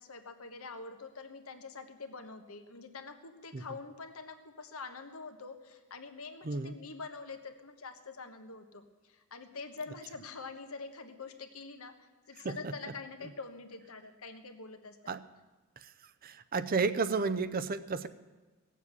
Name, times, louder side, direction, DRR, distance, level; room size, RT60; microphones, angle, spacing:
voice 1, 0.0-15.0, left 4 dB, 75° left, 7 dB, 1.3 m, -45 dB
voice 2, 6.4-6.7 12.4-12.7 15.1-15.2 15.8-15.9 16.2-18.1, right 4 dB, 40° right, 12 dB, 0.6 m, -32 dB
17.5 x 7.4 x 8.3 m, 1.3 s
head